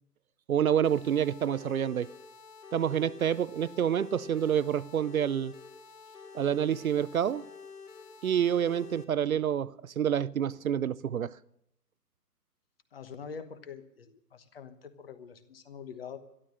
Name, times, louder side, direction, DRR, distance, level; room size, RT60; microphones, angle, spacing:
voice 1, 0.5-2.1 2.7-5.5 6.3-7.4 8.2-11.3, right 9 dB, 60° right, 0.6 m, -28 dB
sound 1, 0.8-9.0, left 5 dB, 75° left, 2.8 m, -49 dB
voice 2, 12.9-16.2, left 6 dB, 35° left, 1.2 m, -45 dB
13.0 x 12.5 x 7.6 m
hypercardioid pair, 165°, 48 cm